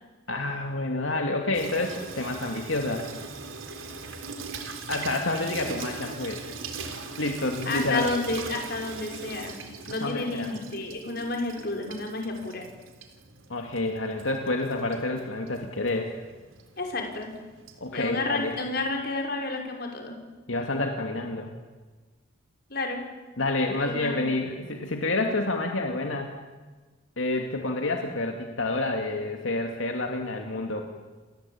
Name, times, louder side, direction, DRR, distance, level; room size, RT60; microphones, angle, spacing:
voice 1, 0.3-3.0 4.9-6.4 7.2-8.1 10.0-10.5 13.5-16.1 17.8-18.5 20.5-21.5 23.4-26.4 27.2-30.8, left 2 dB, 80° left, 3 dB, 2.6 m, -28 dB
Water tap faucet / Sink (filling or washing), 1.5-19.0, right 4 dB, 85° right, 3.9 m, -41 dB
voice 2, 7.7-9.6 9.9-12.6 16.8-17.3 17.9-20.2 22.7-23.0 23.9-24.2, left 2 dB, 50° left, 2 dB, 5.5 m, -30 dB
30.0 x 22.5 x 8.8 m, 1.3 s
head